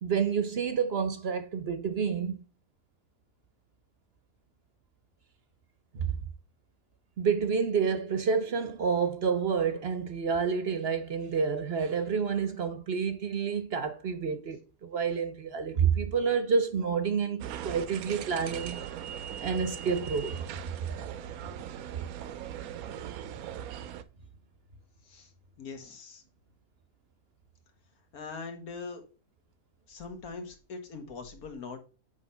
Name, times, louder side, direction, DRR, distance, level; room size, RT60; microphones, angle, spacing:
voice 1, 0.0-2.4 5.9-6.2 7.2-18.8 19.4-20.4, right 6 dB, 50° right, 0.9 m, -29 dB
sound 1, 17.4-24.0, right 9 dB, 80° right, 1.1 m, -39 dB
voice 2, 25.6-26.2 28.1-29.0 29.9-31.8, left 4 dB, 90° left, 1.8 m, -41 dB
8.3 x 3.3 x 5.4 m
omnidirectional pair, 1.5 m